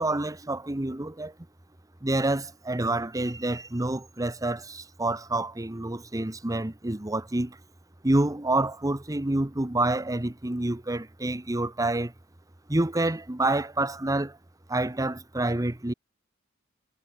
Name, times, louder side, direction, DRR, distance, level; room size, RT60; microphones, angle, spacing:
voice 1, 0.0-1.3 2.0-7.6 8.0-12.1 12.7-14.4 14.7-15.9, right 2 dB, 15° right, 1.0 m, -28 dB
head